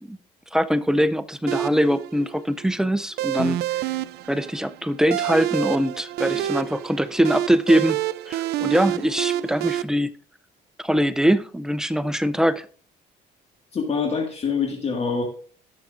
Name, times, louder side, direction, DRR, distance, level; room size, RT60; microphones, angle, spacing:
voice 1, 0.5-3.9 4.3-8.0 8.3-10.1 10.8-12.7, equal, 5° right, 0.4 m, -22 dB
sound 1, 1.5-9.8, right 13 dB, 70° right, 0.4 m, -28 dB
voice 2, 13.7-15.2, left 5 dB, 40° left, 1.9 m, -25 dB
17.0 x 6.0 x 2.5 m
cardioid pair, 110°, 17 cm